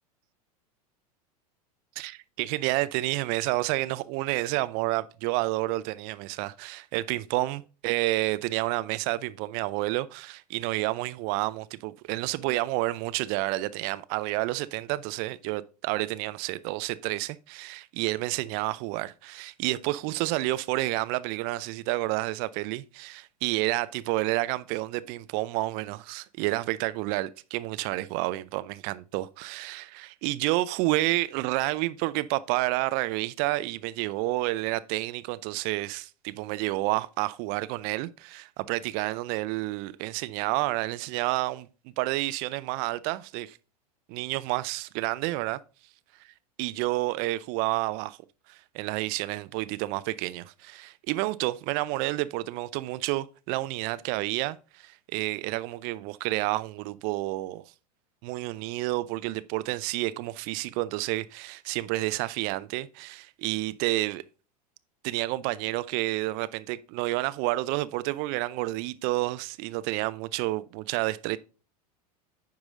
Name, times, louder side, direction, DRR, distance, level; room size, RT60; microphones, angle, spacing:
voice 1, 2.0-41.7 42.0-43.6 44.1-45.6 46.6-48.2 48.5-57.6 58.2-64.2 65.0-71.4, right 19 dB, 50° right, 0.5 m, -30 dB
9.3 x 4.8 x 3.7 m
hypercardioid pair, 90°, 20 cm